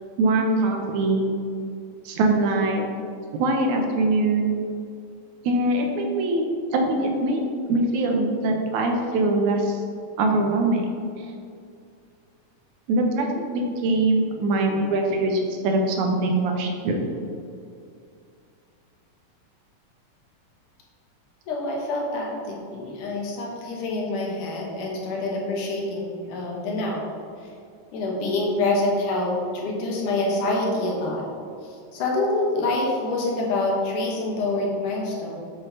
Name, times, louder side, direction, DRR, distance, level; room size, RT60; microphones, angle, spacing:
voice 1, 0.2-1.3 2.1-2.9 3.3-4.5 5.4-6.4 6.7-7.4 7.7-9.8 10.2-10.9 12.9-17.0, right 2 dB, 75° right, 2 dB, 2.1 m, -22 dB
voice 2, 21.5-27.1 27.9-31.2 31.9-35.4, left 2 dB, 75° left, -1 dB, 2.5 m, -26 dB
8.5 x 7.2 x 2.8 m, 2.4 s
omnidirectional pair, 3.8 m